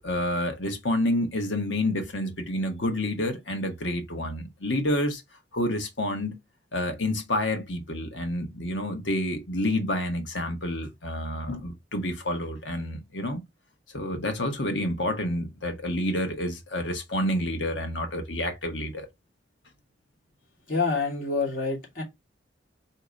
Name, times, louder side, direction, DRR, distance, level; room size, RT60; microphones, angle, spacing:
voice 1, 0.0-5.2 5.5-6.4 6.7-13.4 13.9-19.1, left 1 dB, 90° left, 1.2 m, -29 dB
voice 2, 20.7-22.0, left 4 dB, 50° left, 2.8 m, -27 dB
4.2 x 2.9 x 3.7 m
head